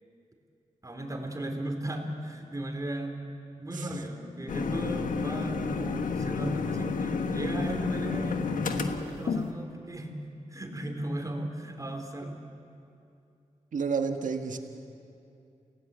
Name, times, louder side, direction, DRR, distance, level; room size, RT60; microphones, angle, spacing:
voice 1, 0.8-3.2 3.6-10.2 10.5-12.4, right 1 dB, 25° right, 4 dB, 3.4 m, -36 dB
sound 1, 4.5-9.5, left 4 dB, 85° left, 1.4 m, -31 dB
voice 2, 13.7-14.6, right 5 dB, 75° right, 6 dB, 1.6 m, -30 dB
28.5 x 17.0 x 8.2 m, 2.6 s
cardioid pair, 70°, 13 cm